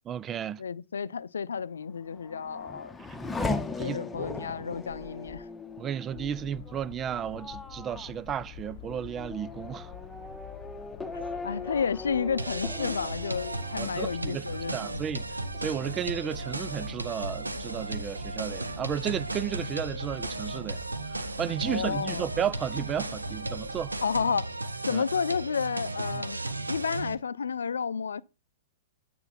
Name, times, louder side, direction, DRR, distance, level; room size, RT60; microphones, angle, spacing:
voice 1, 0.1-0.6 3.8-4.0 5.8-9.9 13.8-14.4 14.7-15.3 15.6-20.8 21.1-23.9 24.9-25.0 26.1-26.2, right 9 dB, 25° right, 0.4 m, -33 dB
voice 2, 0.6-3.0 3.8-5.5 11.1-15.0 21.6-22.3 24.0-24.5 24.9-28.2, left 6 dB, 75° left, 0.5 m, -31 dB
Race car auto racing / Accelerating revving vroom, 1.9-15.2 15.5-16.2, left 3 dB, 10° left, 1.3 m, -39 dB
sound 1, 6.1-24.2, left 12 dB, 55° left, 0.9 m, -47 dB
sound 2, 12.4-27.1, right 2 dB, 85° right, 1.0 m, -35 dB
9.3 x 9.0 x 4.1 m
figure-of-eight pair, 105°, 0 cm